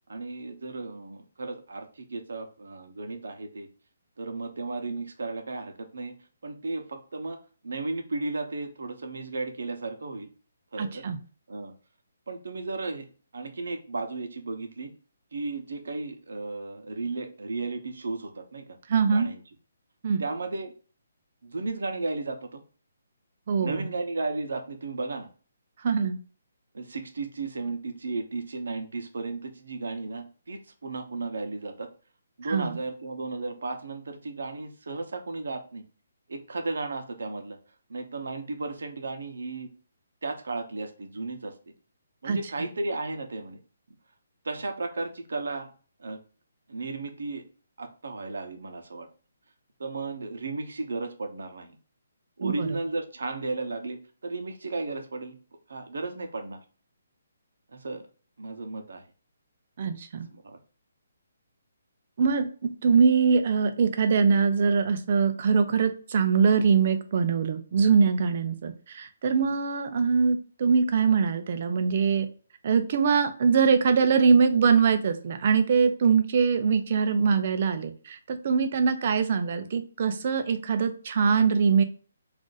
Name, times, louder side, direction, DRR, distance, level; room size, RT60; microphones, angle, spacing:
voice 1, 0.1-3.7 4.2-6.2 6.4-7.4 7.6-10.3 10.7-11.0 11.5-11.7 12.3-13.1 13.3-14.9 15.3-18.8 19.1-19.4 20.2-20.7 21.4-22.6 23.6-25.3 26.7-31.9 32.4-35.8 36.3-37.6 37.9-39.7 40.2-41.5 42.2-43.6 44.4-45.7 46.0-46.2 46.7-47.4 47.8-49.1 49.8-51.7 52.4-55.4 55.7-56.6 57.7-58.0 58.4-59.0 60.3-60.6 69.4-69.5, right 3 dB, 75° right, 6 dB, 0.7 m, -34 dB
voice 2, 10.8-11.2 18.9-19.3 20.0-20.2 23.5-23.9 25.8-26.2 32.5-32.8 42.2-42.4 52.4-52.7 59.8-60.3 62.2-72.3 72.6-81.8, right 5 dB, 35° right, 8 dB, 0.4 m, -23 dB
2.5 x 2.4 x 3.8 m, 0.40 s
hypercardioid pair, 175°, 0 cm